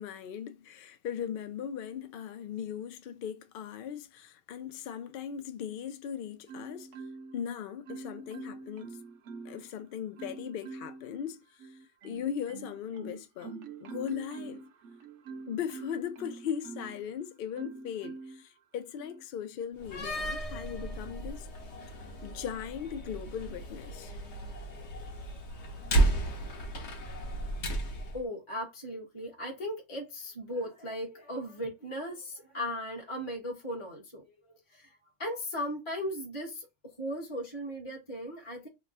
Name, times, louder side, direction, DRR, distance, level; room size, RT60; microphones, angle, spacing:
voice 1, 0.0-6.9 7.3-9.0 9.4-11.7 12.0-14.6 15.5-21.5 22.2-24.1, left 8 dB, 90° left, 0.4 m, -38 dB
Marimba xylophone, 6.5-7.5 7.9-9.7 10.2-11.1 11.6-17.0 17.6-18.4 19.0-19.2, right 4 dB, 65° right, 0.8 m, -45 dB
Slam, 19.8-28.2, right 2 dB, 55° left, 1.1 m, -33 dB
voice 2, 28.1-34.9 35.2-36.7 37.0-38.7, equal, 25° left, 1.0 m, -37 dB
2.9 x 2.2 x 3.8 m
omnidirectional pair, 1.5 m